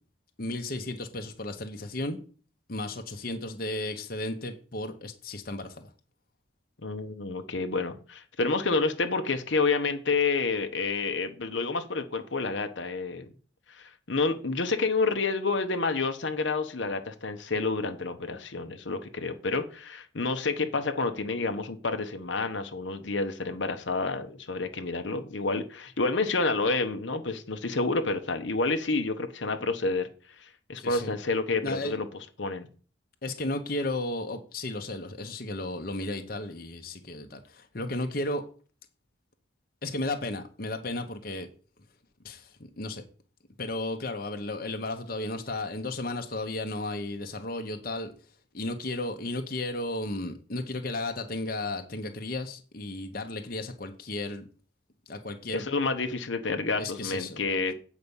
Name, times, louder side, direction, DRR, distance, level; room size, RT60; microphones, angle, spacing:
voice 1, 0.4-2.2 2.7-5.9 30.8-31.1 31.6-31.9 33.2-38.4 39.8-41.5 42.2-43.0 43.6-48.1 48.5-54.5 55.1-55.7 56.8-57.4, left 2 dB, 50° left, 1.0 m, -34 dB
voice 2, 6.8-13.3 13.7-30.1 30.4-32.1 32.4-32.7 55.5-57.7, left 3 dB, 70° left, 1.0 m, -29 dB
8.2 x 5.1 x 7.1 m
head